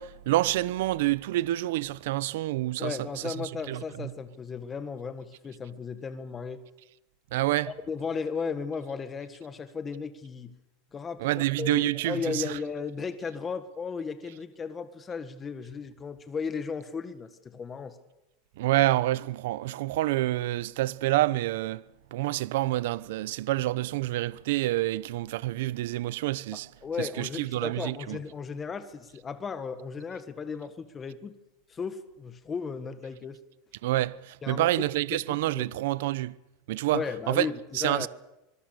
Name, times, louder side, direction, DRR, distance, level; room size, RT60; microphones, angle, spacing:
voice 1, 0.0-3.0 3.2-4.1 7.3-7.7 11.2-12.6 18.6-21.8 22.1-26.7 27.0-28.2 33.8-36.3 36.7-37.5 37.7-38.1, right 16 dB, 75° right, 0.8 m, -28 dB
voice 2, 2.8-6.6 7.9-10.5 10.9-18.0 26.5-31.3 31.7-33.4 34.4-34.7 35.1-35.7 36.9-38.1, left 5 dB, 20° left, 1.7 m, -35 dB
25.5 x 21.5 x 6.8 m
supercardioid pair, 145°, 0 cm